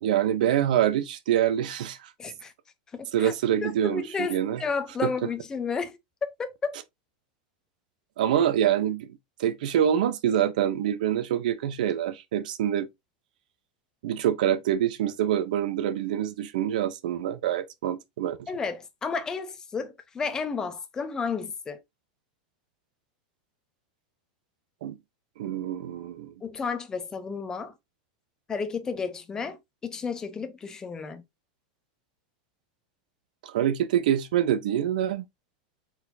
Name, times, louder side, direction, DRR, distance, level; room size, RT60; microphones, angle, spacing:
voice 1, 0.0-2.1 3.1-4.6 5.0-5.1 8.2-9.1 9.4-12.9 14.0-18.5 24.8-25.0 25.4-26.3 33.4-35.2, right 10 dB, 75° right, 0.8 m, -25 dB
voice 2, 2.2-2.5 2.9-3.3 3.6-6.8 18.5-21.8 26.4-27.7 28.5-31.2, left 5 dB, 15° left, 0.7 m, -32 dB
4.4 x 4.1 x 2.7 m
supercardioid pair, 155°, 4 cm